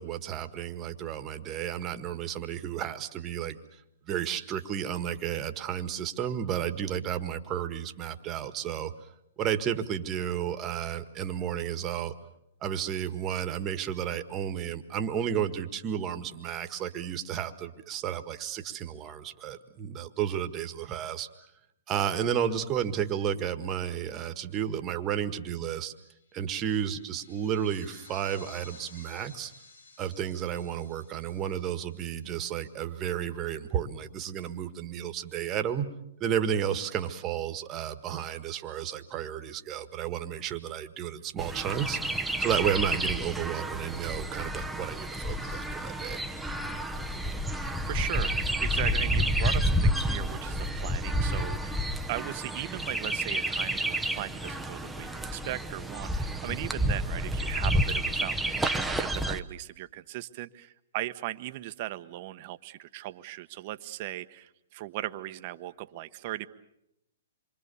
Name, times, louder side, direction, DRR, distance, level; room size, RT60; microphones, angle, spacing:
voice 1, 0.0-3.6 4.1-8.9 9.4-12.1 12.6-21.3 21.9-25.9 26.3-29.5 30.0-35.9 36.2-42.0 42.4-46.2, right 9 dB, 25° right, 8 dB, 1.6 m, -32 dB
sound 1, 26.1-32.9, left 4 dB, 80° left, 3.2 m, -54 dB
Chirp tweet, 41.4-59.4, equal, 5° right, 0.9 m, -30 dB
voice 2, 47.6-66.5, right 15 dB, 45° right, 11 dB, 1.1 m, -38 dB
27.5 x 24.0 x 7.0 m, 0.82 s
hypercardioid pair, 135°, 0 cm